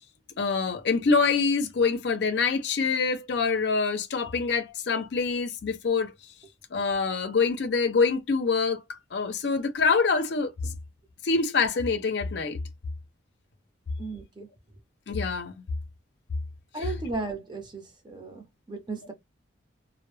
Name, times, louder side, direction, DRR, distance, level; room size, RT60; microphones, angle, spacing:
voice 1, 0.4-6.1 6.7-8.8 9.1-10.7 11.2-12.6 15.1-15.5 16.8-16.9, left 4 dB, 60° left, 0.5 m, -25 dB
voice 2, 14.0-14.5 16.7-19.1, right 3 dB, 25° right, 0.6 m, -35 dB
2.1 x 2.0 x 3.1 m
head